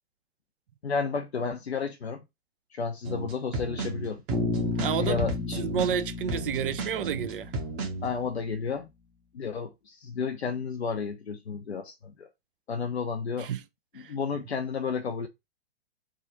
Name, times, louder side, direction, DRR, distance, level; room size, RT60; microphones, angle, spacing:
voice 1, 0.8-2.2 2.7-4.2 5.0-5.6 8.0-8.9 9.3-12.3 12.7-13.5 14.1-15.3, left 5 dB, 80° left, 0.7 m, -32 dB
sound 1, 3.0-8.1, right 2 dB, 30° right, 1.0 m, -34 dB
Bass guitar, 4.3-8.4, left 3 dB, 5° right, 0.8 m, -33 dB
voice 2, 4.8-7.5 13.4-13.6 13.9-14.1, right 8 dB, 55° right, 0.5 m, -31 dB
3.6 x 2.3 x 4.4 m
figure-of-eight pair, 115°, 32 cm